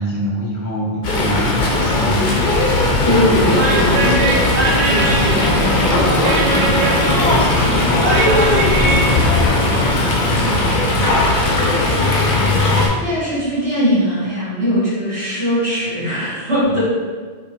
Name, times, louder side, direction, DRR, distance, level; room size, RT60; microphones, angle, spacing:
voice 1, 0.0-3.2 3.9-4.3 5.0-5.8 7.0-11.2 16.7-16.8, equal, 30° left, -3 dB, 0.3 m, -26 dB
Fowl, 1.0-12.9, left 2 dB, 55° left, 0.7 m, -17 dB
voice 2, 3.0-4.2 4.8-6.7 13.0-16.8, equal, 70° right, -10 dB, 1.3 m, -21 dB
sound 1, 3.5-9.5, right 2 dB, 45° right, 0.6 m, -20 dB
4.5 x 2.1 x 2.8 m, 1.5 s
omnidirectional pair, 1.1 m